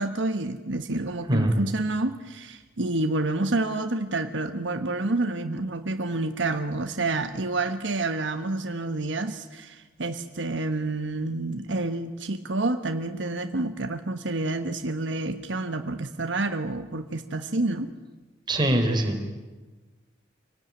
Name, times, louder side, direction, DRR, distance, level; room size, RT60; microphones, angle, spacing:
voice 1, 0.0-17.9, right 2 dB, 75° right, 7 dB, 1.3 m, -28 dB
voice 2, 1.3-1.6 18.5-19.3, right 1 dB, 25° right, 3 dB, 3.7 m, -23 dB
26.5 x 18.0 x 9.5 m, 1.3 s
head